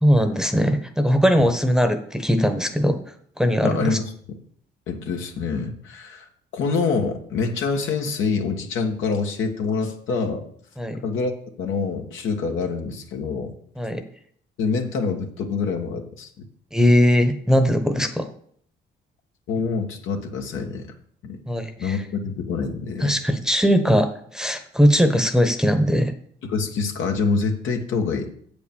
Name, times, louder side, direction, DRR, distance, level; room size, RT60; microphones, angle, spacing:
voice 1, 0.0-4.0 10.8-11.0 13.8-14.0 16.7-18.3 21.5-22.0 23.0-26.1, equal, 5° right, 6 dB, 0.9 m, -20 dB
voice 2, 3.6-4.1 4.9-6.3 6.5-10.4 11.0-11.3 11.6-13.6 14.6-16.3 19.5-20.9 21.2-21.4 21.8-23.2 26.4-28.3, left 4 dB, 80° left, 3 dB, 1.5 m, -26 dB
7.7 x 5.2 x 7.0 m, 0.62 s
cardioid pair, 90°, 20 cm